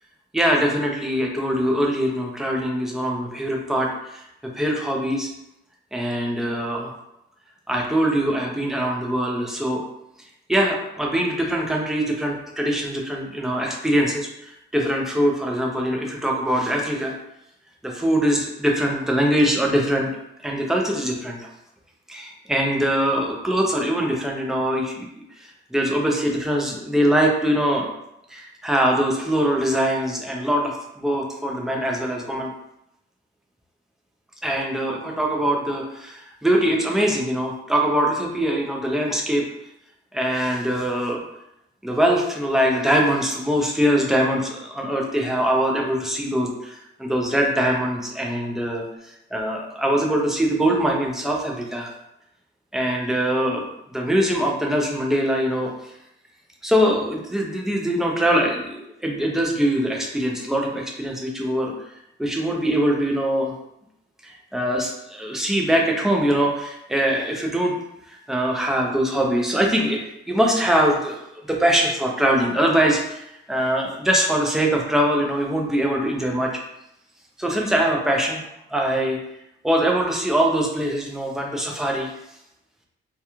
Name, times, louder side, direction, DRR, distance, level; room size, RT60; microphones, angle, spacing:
voice 1, 0.3-5.3 5.9-6.9 7.7-9.8 10.5-17.1 17.8-20.1 20.4-21.4 22.1-25.2 25.7-27.8 28.3-32.5 34.4-39.4 40.1-41.2 41.8-48.8 49.3-51.9 52.7-55.7 56.6-61.7 62.2-63.5 64.2-67.7 68.1-70.0 70.3-71.2 71.5-73.2 73.5-76.5 77.4-78.4 78.7-79.2 79.6-82.1, equal, ahead, -1 dB, 0.4 m, -22 dB
2.3 x 2.3 x 2.9 m, 0.82 s
cardioid pair, 135°, 21 cm